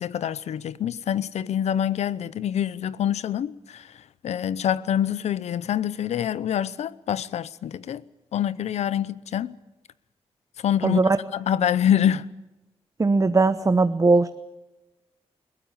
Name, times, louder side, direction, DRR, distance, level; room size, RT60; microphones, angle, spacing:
voice 1, 0.0-3.9 4.2-8.0 8.3-9.6 10.6-11.0 11.3-12.3, left 10 dB, 90° left, 0.7 m, -25 dB
voice 2, 10.8-11.2 13.0-14.3, right 3 dB, 30° right, 0.9 m, -19 dB
20.5 x 17.5 x 8.8 m
cardioid pair, 75°, 11 cm